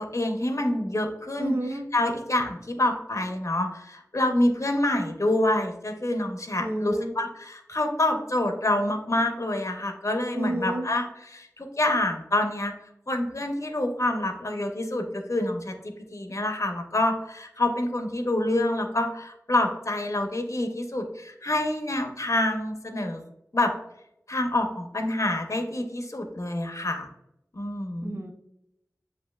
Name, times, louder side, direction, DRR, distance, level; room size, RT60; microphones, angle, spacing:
voice 1, 0.0-12.7 13.1-15.7 16.1-23.2 23.5-23.7 24.3-27.1 27.5-28.2, left 1 dB, 55° left, 4 dB, 0.7 m, -27 dB
voice 2, 1.4-1.9 6.6-7.2 10.3-10.9 28.0-28.3, right 1 dB, 35° right, 5 dB, 0.6 m, -30 dB
7.6 x 2.7 x 2.3 m, 0.81 s
wide cardioid pair, 40°, 6 cm